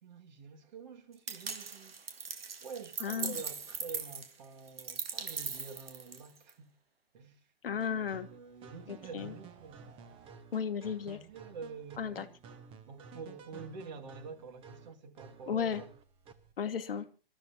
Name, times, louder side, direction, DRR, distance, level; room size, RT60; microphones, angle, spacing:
voice 1, 0.0-2.2 2.6-6.7 7.1-7.5 7.9-10.0 11.0-12.3 12.9-15.9, right 5 dB, 50° right, 2.2 m, -48 dB
sound 1, 1.3-6.5, right 5 dB, 80° right, 1.9 m, -40 dB
voice 2, 3.0-3.4 7.6-8.3 8.9-9.3 10.5-11.2 12.0-12.3 15.5-15.8 16.6-17.1, left 7 dB, 75° left, 1.4 m, -34 dB
sound 2, 7.8-16.5, right 5 dB, 20° right, 1.1 m, -53 dB
27.0 x 13.0 x 2.9 m
hypercardioid pair, 140°, 29 cm